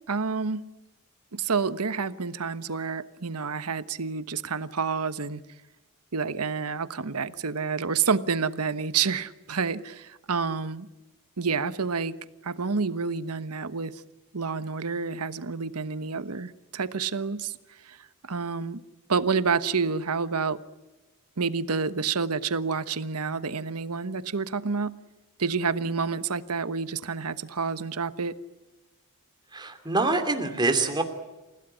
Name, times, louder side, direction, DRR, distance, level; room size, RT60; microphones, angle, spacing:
voice 1, 0.1-0.6 1.3-5.4 6.1-10.9 11.4-12.1 12.4-13.9 14.3-17.5 17.8-18.0 18.3-18.8 19.1-20.6 21.4-24.9 25.4-28.3, right 5 dB, 85° right, 1.2 m, -28 dB
voice 2, 29.5-31.0, right 3 dB, 20° right, 2.8 m, -25 dB
29.0 x 16.5 x 10.0 m
head